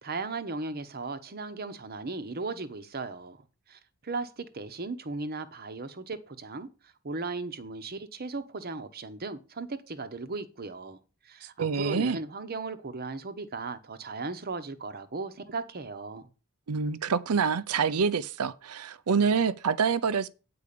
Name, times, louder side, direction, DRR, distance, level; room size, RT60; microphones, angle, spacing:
voice 1, 0.0-11.0 11.2-16.3, right 3 dB, 45° right, 0.9 m, -37 dB
voice 2, 11.6-12.2 16.7-20.3, right 5 dB, 80° right, 0.6 m, -26 dB
8.6 x 4.8 x 6.6 m
head